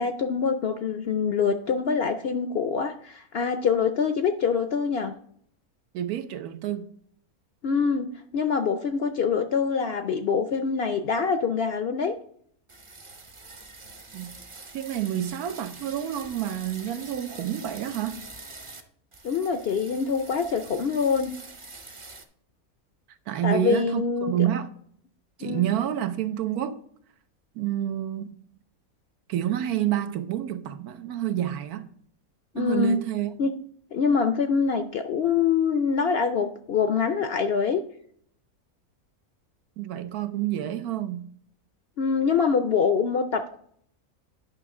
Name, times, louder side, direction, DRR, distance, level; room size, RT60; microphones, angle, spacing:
voice 1, 0.0-5.1 7.6-12.1 19.2-21.3 23.4-24.3 25.4-25.6 32.5-33.0 33.4-33.5 33.9-37.8 42.0-43.6, left 5 dB, 65° left, 0.6 m, -25 dB
voice 2, 5.9-6.8 14.1-14.3 14.7-18.3 23.3-24.7 25.4-26.8 27.5-28.4 29.3-31.9 32.5-33.3 39.8-41.3, right 11 dB, 90° right, 1.2 m, -28 dB
sound 1, 12.7-18.8 19.1-22.2, right 3 dB, 30° right, 0.6 m, -45 dB
9.4 x 5.9 x 3.7 m
omnidirectional pair, 1.5 m